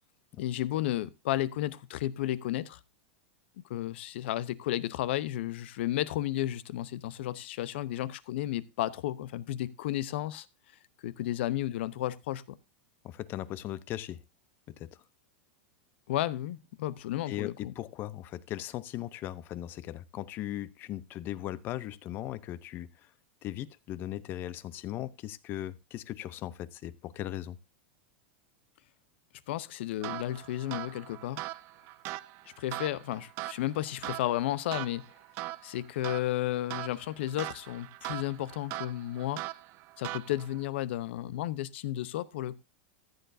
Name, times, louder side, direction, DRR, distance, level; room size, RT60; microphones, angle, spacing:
voice 1, 0.4-2.8 3.7-10.5 11.0-12.6 16.1-17.7 29.5-31.4 32.6-35.1 35.6-39.4 40.0-42.5, left 14 dB, 65° left, 0.7 m, -33 dB
voice 2, 13.0-14.2 14.8-14.9 17.3-23.1 23.4-27.6, left 13 dB, 30° left, 0.6 m, -38 dB
sound 1, 30.0-40.7, right 18 dB, 40° right, 0.5 m, -41 dB
14.5 x 9.3 x 2.6 m
supercardioid pair, 150°, 6 cm